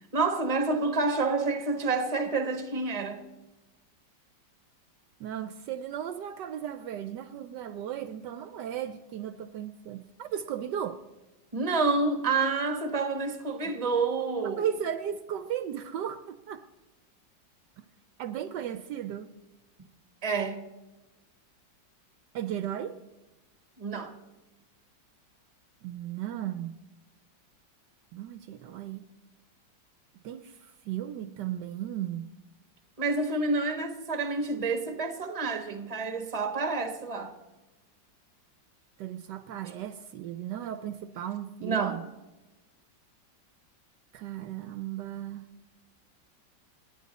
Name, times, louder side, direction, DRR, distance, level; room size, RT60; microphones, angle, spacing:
voice 1, 0.1-3.2 11.5-14.6 20.2-20.7 23.8-24.1 33.0-37.3 41.6-42.0, right 3 dB, 20° right, 1.1 m, -28 dB
voice 2, 5.2-11.0 14.4-16.6 17.8-17.9 18.2-19.3 22.3-23.0 25.8-26.8 28.1-29.1 30.2-32.3 39.0-42.0 44.1-45.4, right 10 dB, 75° right, 1.2 m, -35 dB
28.5 x 9.8 x 4.1 m
omnidirectional pair, 2.0 m